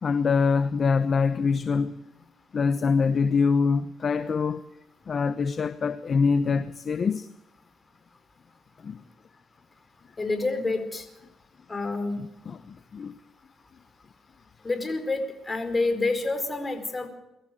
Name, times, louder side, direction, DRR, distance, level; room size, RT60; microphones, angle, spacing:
voice 1, 0.0-1.9 2.5-4.6 5.1-7.3 8.8-9.0 12.2-13.1, left 5 dB, 45° left, 0.9 m, -24 dB
voice 2, 10.2-11.0 11.7-12.2 14.6-17.1, left 3 dB, 25° left, 4.7 m, -28 dB
23.5 x 14.0 x 7.8 m
cardioid pair, 90°, 0 cm